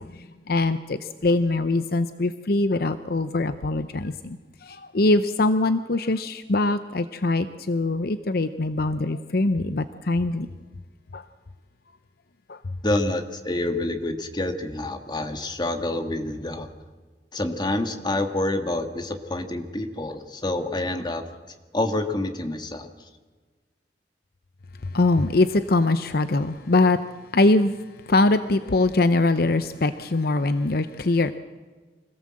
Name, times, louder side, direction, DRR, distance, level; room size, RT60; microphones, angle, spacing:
voice 1, 0.5-4.4 4.6-10.5 11.1-11.2 12.5-12.6 24.9-27.0 27.3-27.7 28.1-31.3, left 2 dB, 55° left, 11 dB, 0.7 m, -22 dB
voice 2, 12.8-16.7 17.3-21.2 21.7-22.9, left 1 dB, 25° left, 6 dB, 1.7 m, -27 dB
25.0 x 17.0 x 7.7 m, 1.4 s
head